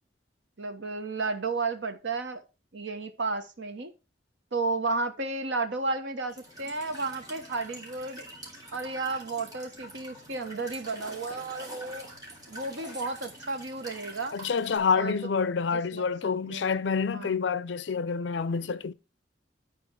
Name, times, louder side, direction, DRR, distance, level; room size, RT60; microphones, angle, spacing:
voice 1, 0.6-2.4 2.7-3.9 4.5-8.3 8.7-12.1 12.5-14.3 14.9-15.1 15.7-16.8 17.1-17.4, right 3 dB, 75° right, 1.2 m, -33 dB
Walk footsteps / Chirp tweet / Stream, 6.3-14.8, equal, 20° right, 2.8 m, -45 dB
voice 2, 14.3-18.9, left 5 dB, 70° left, 0.5 m, -28 dB
11.0 x 4.3 x 4.7 m
head